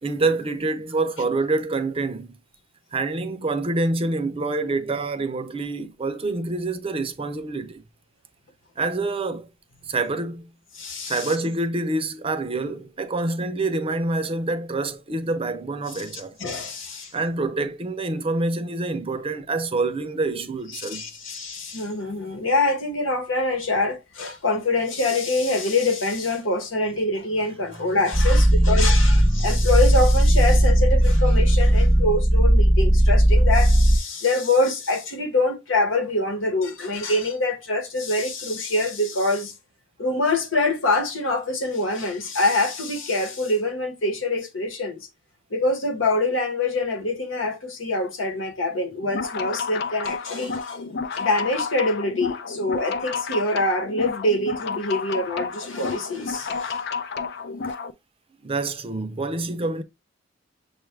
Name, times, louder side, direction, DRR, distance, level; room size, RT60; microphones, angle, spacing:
voice 1, 0.0-2.4 2.9-7.8 8.8-9.5 9.8-10.5 11.0-16.4 17.1-21.1 27.4-31.1 58.4-59.8, right 2 dB, 30° right, 0.5 m, -27 dB
voice 2, 10.7-11.3 16.1-17.1 20.7-39.5 40.0-45.1 45.5-50.8 51.1-56.8 57.6-57.7, left 2 dB, 90° left, 1.1 m, -25 dB
sound 1, 28.1-34.0, right 1 dB, 10° left, 0.8 m, -17 dB
sound 2, 49.0-57.9, left 5 dB, 60° left, 0.5 m, -31 dB
6.8 x 2.4 x 3.2 m
head